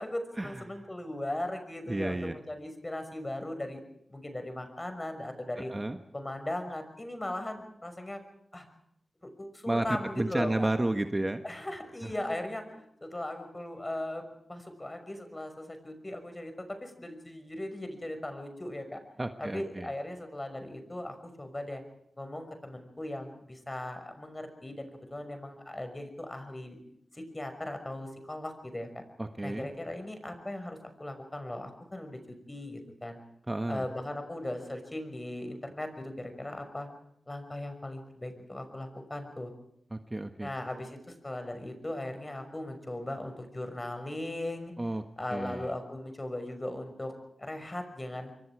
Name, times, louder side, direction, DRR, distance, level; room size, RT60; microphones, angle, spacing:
voice 1, 0.0-3.8 4.1-5.7 6.1-8.2 8.5-8.6 9.2-10.7 11.4-19.0 19.4-21.8 22.2-26.8 27.1-29.0 29.4-33.2 33.7-36.9 37.3-39.5 40.4-44.7 45.2-48.3, left 1 dB, 25° left, 7 dB, 5.9 m, -38 dB
voice 2, 1.9-2.4 5.7-6.0 9.7-11.4 12.0-12.1 19.2-19.9 29.2-29.7 33.5-33.9 39.9-40.5 44.8-45.0 45.3-45.7, right 1 dB, 25° right, 7 dB, 1.5 m, -31 dB
27.5 x 23.0 x 4.9 m, 0.72 s
cardioid pair, 55°, 0 cm